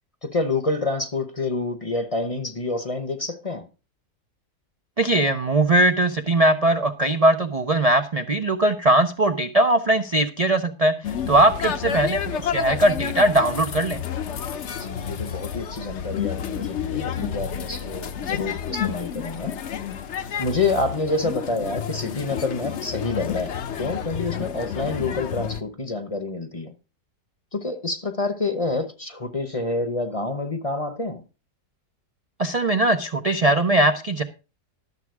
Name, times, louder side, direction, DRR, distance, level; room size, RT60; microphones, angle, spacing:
voice 1, 0.2-3.7 11.5-11.7 14.7-19.5 20.4-26.7 27.5-31.2, left 3 dB, 25° left, 0.8 m, -28 dB
voice 2, 5.0-11.0 11.3-14.0 32.4-34.2, right 1 dB, 55° right, 0.4 m, -20 dB
sound 1, 11.0-25.6, left 8 dB, 55° left, 0.9 m, -30 dB
12.0 x 7.2 x 4.7 m
omnidirectional pair, 1.7 m